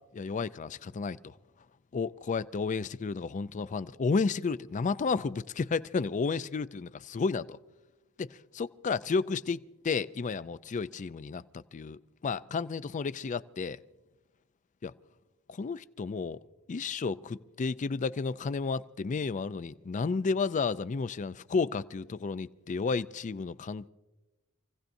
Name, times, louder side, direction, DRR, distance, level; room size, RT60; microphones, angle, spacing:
voice 1, 0.1-1.3 1.9-7.6 8.2-13.8 14.8-14.9 15.5-16.4 16.7-23.9, left 4 dB, 35° left, 0.4 m, -32 dB
27.5 x 16.5 x 2.6 m
head